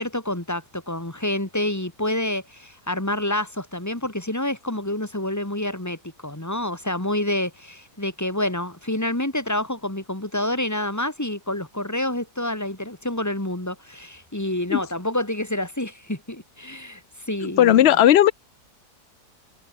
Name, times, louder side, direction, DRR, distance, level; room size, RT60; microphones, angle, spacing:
voice 1, 0.0-17.0 17.3-17.9, left 1 dB, 10° left, 2.8 m, -28 dB
voice 2, 17.4-18.3, left 11 dB, 90° left, 0.5 m, -15 dB
omnidirectional pair, 1.8 m